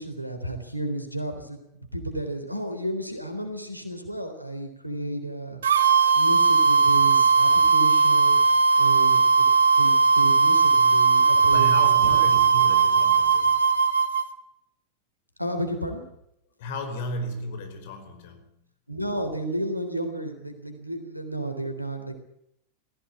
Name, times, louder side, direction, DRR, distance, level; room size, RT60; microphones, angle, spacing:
voice 1, 0.0-1.6 1.9-5.6 6.1-8.4 8.8-9.4 9.8-12.2 15.4-16.0 18.9-22.1, right 1 dB, 90° right, 7 dB, 3.7 m, -32 dB
sound 1, 5.6-14.3, right 5 dB, 65° right, 1.4 m, -19 dB
voice 2, 11.5-13.7 16.6-18.6, left 2 dB, 50° left, 7 dB, 5.0 m, -34 dB
19.0 x 15.5 x 9.9 m, 0.77 s
figure-of-eight pair, 90°, 0 cm